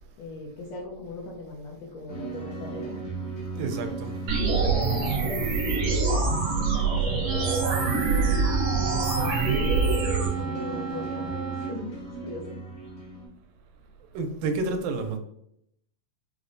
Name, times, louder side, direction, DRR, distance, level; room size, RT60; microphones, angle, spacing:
voice 1, 0.2-3.0 4.5-12.0 12.2-12.6, left 2 dB, 80° left, 1.5 m, -39 dB
sound 1, 2.1-13.3, right 4 dB, 45° left, 0.5 m, -35 dB
voice 2, 3.6-4.1 14.1-15.2, right 3 dB, 85° right, 1.9 m, -29 dB
sound 2, 4.3-10.3, right 4 dB, 65° right, 1.7 m, -25 dB
Wind instrument woodwind instrument, 7.2-11.8, right 5 dB, 40° right, 1.2 m, -35 dB
4.8 x 2.1 x 2.5 m
omnidirectional pair, 3.4 m